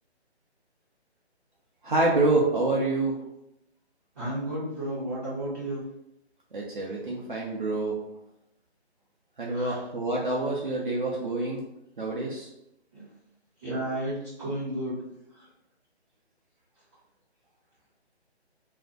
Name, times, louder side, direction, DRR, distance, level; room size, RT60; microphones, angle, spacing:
voice 1, 1.8-3.1 6.5-7.9 9.4-11.6 12.0-12.5, right 2 dB, 50° right, -3 dB, 0.6 m, -26 dB
voice 2, 4.1-5.8 9.5-9.8 12.9-13.0 13.6-15.0 15.3-15.5, right 1 dB, 15° right, -14 dB, 0.7 m, -32 dB
2.5 x 2.1 x 3.5 m, 0.82 s
figure-of-eight pair, 155°, 33 cm